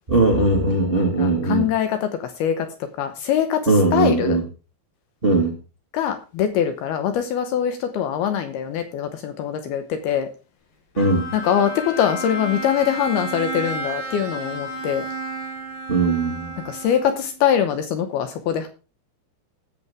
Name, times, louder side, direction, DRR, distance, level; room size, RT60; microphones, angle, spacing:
voice 1, 0.1-1.7 3.7-4.4 5.2-5.5 11.0-11.3 15.9-16.6, right 2 dB, 90° right, 1 dB, 0.5 m, -19 dB
voice 2, 1.0-2.7 3.0-4.4 5.9-10.3 11.3-15.1 16.6-18.7, left 9 dB, 75° left, 8 dB, 2.4 m, -23 dB
Bowed string instrument, 11.0-17.4, right 1 dB, 55° left, 6.4 m, -32 dB
18.0 x 7.0 x 3.5 m, 0.32 s
omnidirectional pair, 5.4 m